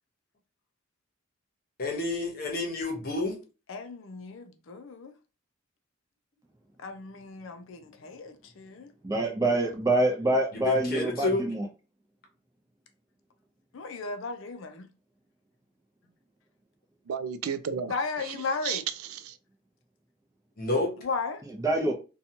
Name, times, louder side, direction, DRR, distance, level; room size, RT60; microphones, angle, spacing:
voice 1, 1.8-3.4 10.5-11.5 20.6-20.9, left 2 dB, 45° left, 0.8 m, -29 dB
voice 2, 3.7-5.1 6.8-8.9 13.7-14.9 17.9-18.8 21.0-21.4, left 4 dB, 65° left, 0.5 m, -35 dB
voice 3, 9.0-11.7 21.5-21.9, right 1 dB, 15° right, 0.5 m, -26 dB
voice 4, 17.1-19.4, right 7 dB, 80° right, 0.4 m, -34 dB
2.8 x 2.3 x 2.7 m
head